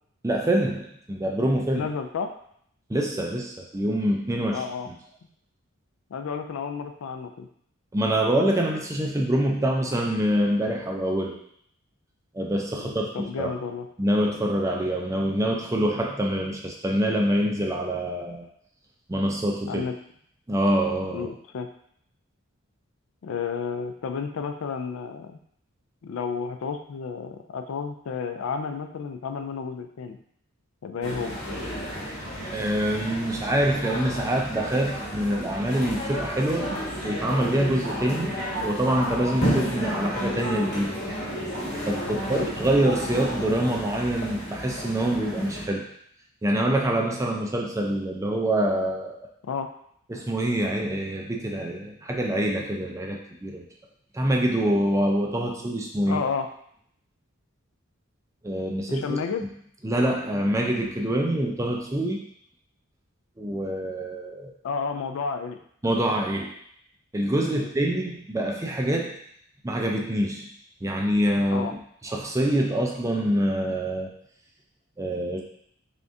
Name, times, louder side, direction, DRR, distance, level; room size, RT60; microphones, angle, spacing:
voice 1, 0.2-1.9 2.9-4.9 7.9-11.4 12.3-13.5 14.0-18.5 19.1-19.8 20.5-21.3 32.5-36.7 37.0-40.9 41.9-45.9 46.4-49.2 50.1-53.7 54.1-56.2 58.4-59.2 59.8-62.2 63.4-64.5 65.8-66.5 67.1-69.2 69.6-70.5 70.8-74.2 75.0-75.4, right 1 dB, 15° right, 0 dB, 0.4 m, -25 dB
voice 2, 1.7-2.3 4.5-4.9 6.1-7.5 12.8-13.9 19.7-19.9 21.1-21.7 23.2-25.4 26.0-30.2 30.8-31.4 42.1-42.5 49.4-49.7 56.1-56.5 58.9-59.5 64.6-65.6 67.5-67.7 71.5-71.7, left 5 dB, 70° left, 7 dB, 0.4 m, -31 dB
sound 1, 31.0-45.7, equal, 50° left, 1.1 m, -31 dB
3.5 x 3.5 x 2.6 m, 0.67 s
head